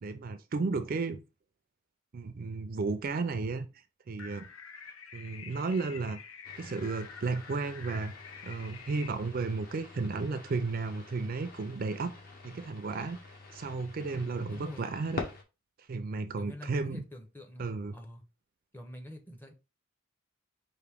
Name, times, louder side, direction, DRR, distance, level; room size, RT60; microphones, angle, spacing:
voice 1, 0.0-1.2 2.1-3.7 4.1-4.5 5.1-6.2 6.6-8.1 8.4-12.1 12.4-13.2 13.5-15.2 15.9-17.0 17.6-17.9, right 3 dB, 45° right, 0.4 m, -33 dB
sound 1, 4.2-9.1, left 6 dB, 85° left, 0.6 m, -48 dB
sound 2, 6.4-15.4, left 3 dB, 45° left, 1.0 m, -46 dB
voice 2, 14.1-14.9 16.4-18.2 18.7-19.5, equal, 10° left, 0.6 m, -46 dB
5.0 x 2.6 x 3.4 m
head